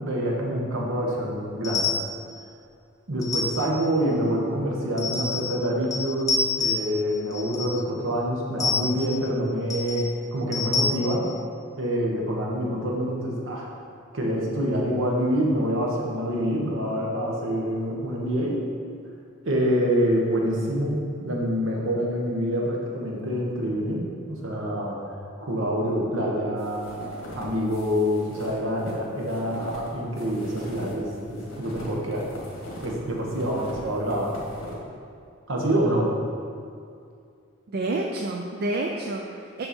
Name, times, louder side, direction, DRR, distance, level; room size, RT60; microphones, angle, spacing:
voice 1, 0.0-1.9 3.1-11.3 11.8-13.7 14.1-18.7 19.4-25.0 25.4-27.0 27.3-32.3 32.8-34.4 35.5-36.1, equal, 70° right, -2 dB, 1.3 m, -26 dB
sound 1, 1.6-2.2 3.2-3.9 5.0-5.6 5.9-7.0 7.3-7.8 8.6-9.2 9.7-10.1 10.5-10.9, left 4 dB, 15° left, 1.0 m, -28 dB
sound 2, 26.6-32.9 33.3-34.8, equal, 70° left, 1.8 m, -41 dB
voice 2, 37.7-39.7, right 2 dB, 50° right, 1 dB, 0.4 m, -29 dB
6.7 x 5.7 x 4.3 m, 2.4 s
head